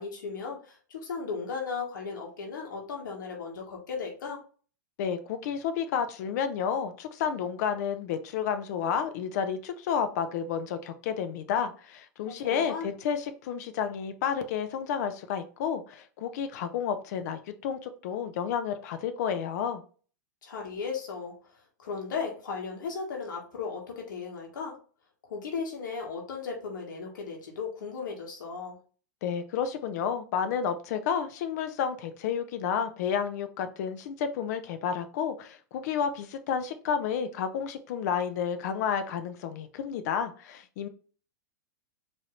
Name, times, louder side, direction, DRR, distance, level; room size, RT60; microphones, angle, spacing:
voice 1, 0.0-4.4 12.3-12.9 20.4-21.4 21.8-24.8 25.2-28.8, left 5 dB, 75° left, 0 dB, 1.4 m, -36 dB
voice 2, 5.0-19.8 29.2-40.9, left 7 dB, 60° left, 9 dB, 0.8 m, -31 dB
4.7 x 3.0 x 3.2 m, 0.39 s
hypercardioid pair, 115°, 10 cm